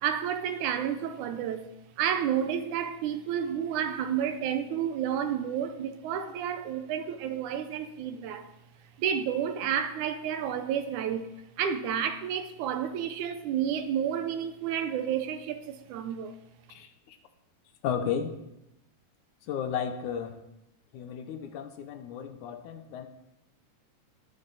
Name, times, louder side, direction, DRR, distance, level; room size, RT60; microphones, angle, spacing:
voice 1, 0.0-1.7 2.0-8.5 9.0-11.3 11.6-16.4, right 9 dB, 75° right, 2.1 m, -30 dB
voice 2, 16.7-17.2 17.8-18.3 19.4-20.4 20.9-23.1, left 8 dB, 75° left, 2.2 m, -34 dB
20.0 x 7.1 x 4.0 m
omnidirectional pair, 3.7 m